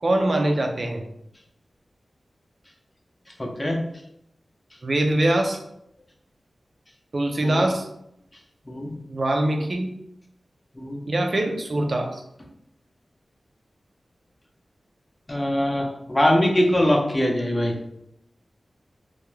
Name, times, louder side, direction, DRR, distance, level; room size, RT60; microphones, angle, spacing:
voice 1, 0.0-1.0 4.8-5.6 7.1-7.9 9.1-9.9 11.1-12.2, right 1 dB, 55° right, 3 dB, 0.4 m, -23 dB
voice 2, 3.4-3.8 7.4-7.7 8.7-9.0 10.8-11.0 15.3-17.7, left 1 dB, 25° left, 1 dB, 0.6 m, -22 dB
2.3 x 2.2 x 3.1 m, 0.77 s
wide cardioid pair, 60°, 0 cm